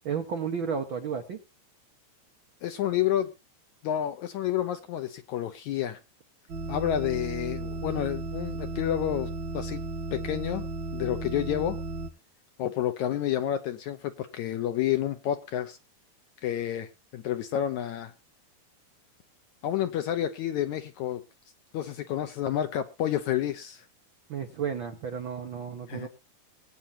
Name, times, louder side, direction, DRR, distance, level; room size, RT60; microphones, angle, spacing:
voice 1, 0.0-1.4 24.3-26.1, right 6 dB, 75° right, 1.1 m, -32 dB
voice 2, 2.6-3.3 3.8-6.0 6.7-9.8 10.1-10.7 10.9-11.8 12.6-15.8 16.4-18.1 19.6-21.2 21.7-23.9 25.9-26.1, left 11 dB, 75° left, 1.8 m, -29 dB
sound 1, 6.5-12.1, right 2 dB, 55° right, 1.3 m, -35 dB
22.0 x 8.8 x 2.7 m
omnidirectional pair, 4.1 m